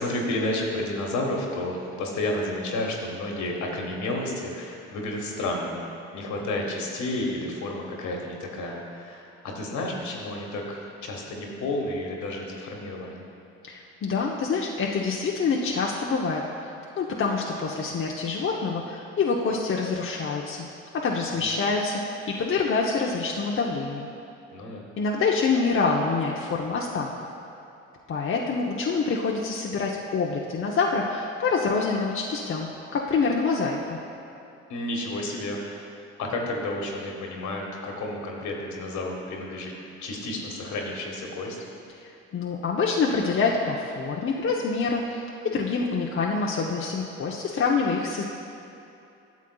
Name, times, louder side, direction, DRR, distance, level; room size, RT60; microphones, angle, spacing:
voice 1, 0.0-5.8 6.1-13.2 21.3-21.5 24.5-24.8 34.7-35.9 36.2-39.7 40.0-41.6, left 1 dB, 65° left, 0 dB, 1.5 m, -31 dB
voice 2, 13.7-16.4 17.0-20.6 20.9-24.1 25.0-27.1 28.1-34.0 42.3-48.2, left 4 dB, 40° left, -2 dB, 0.8 m, -26 dB
12.0 x 7.2 x 2.3 m, 2.8 s
hypercardioid pair, 55°, 31 cm